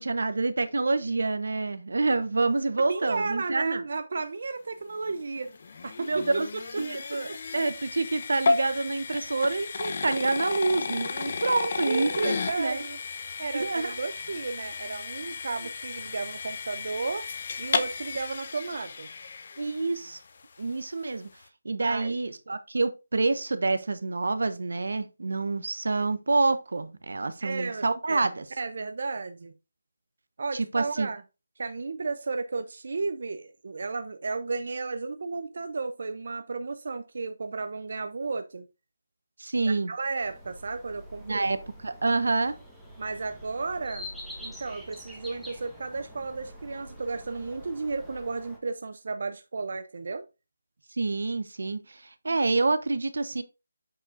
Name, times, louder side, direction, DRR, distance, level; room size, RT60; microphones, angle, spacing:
voice 1, 0.0-3.8 6.0-6.5 6.8-12.8 13.5-13.9 19.6-20.2 20.6-21.3 21.6-28.4 30.5-31.1 39.4-39.9 41.2-41.6 41.8-42.6 50.9-53.4, right 3 dB, 80° right, 1.0 m, -27 dB
voice 2, 2.9-5.5 5.8-6.4 11.9-13.0 13.4-17.3 17.6-19.1 21.9-22.2 27.4-28.3 28.6-29.5 30.4-31.2 31.6-38.7 39.7-41.5 43.0-44.1 44.4-50.2, right 4 dB, 55° right, 0.6 m, -33 dB
sound 1, 5.0-20.2, left 4 dB, 40° left, 0.8 m, -33 dB
sound 2, 40.2-48.6, left 1 dB, ahead, 1.2 m, -46 dB
8.4 x 5.0 x 2.5 m
hypercardioid pair, 175°, 0 cm